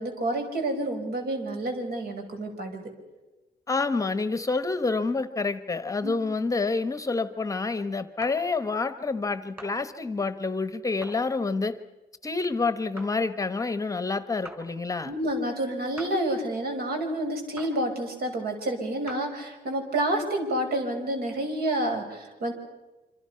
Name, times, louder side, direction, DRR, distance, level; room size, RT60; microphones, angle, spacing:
voice 1, 0.0-2.8 6.0-6.1 15.0-22.5, right 1 dB, 65° right, 4 dB, 5.5 m, -29 dB
voice 2, 3.7-11.8 12.2-15.1, left 3 dB, 20° left, 12 dB, 0.9 m, -28 dB
sound 1, 8.2-8.4 9.6-9.7 11.0-11.2 13.0-13.1 14.5-14.6 16.0-16.1 17.6-17.7 19.1-19.2, right 1 dB, 15° right, 4.2 m, -41 dB
27.0 x 26.5 x 5.7 m, 1.1 s
wide cardioid pair, 160°, 17 cm